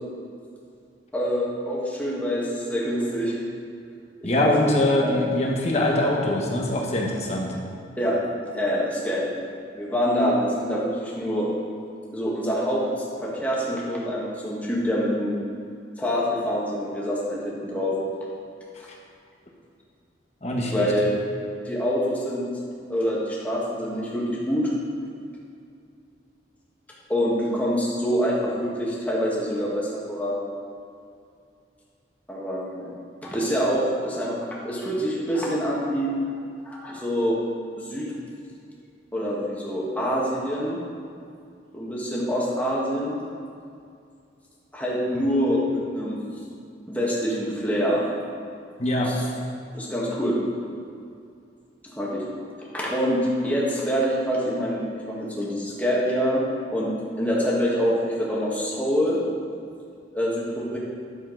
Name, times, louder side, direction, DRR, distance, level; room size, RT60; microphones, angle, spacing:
voice 1, 1.1-3.3 4.2-4.7 5.0-5.2 8.0-8.2 8.5-9.3 9.7-11.5 12.1-12.8 13.2-15.4 16.0-18.0 20.7-21.2 21.6-22.4 22.9-24.7 27.1-30.4 32.3-32.9 33.2-36.1 36.6-37.4 37.8-38.1 39.1-40.8 41.7-43.2 44.7-46.3 46.9-48.1 49.0-49.2 49.7-50.4 51.8-52.2 52.7-56.4 56.7-56.9 57.2-59.3 60.1-60.8, equal, 10° left, -5 dB, 1.6 m, -25 dB
voice 2, 4.2-7.5 20.4-20.9 48.8-49.1, left 1 dB, 35° left, -1 dB, 1.3 m, -23 dB
10.0 x 7.2 x 4.0 m, 2.4 s
head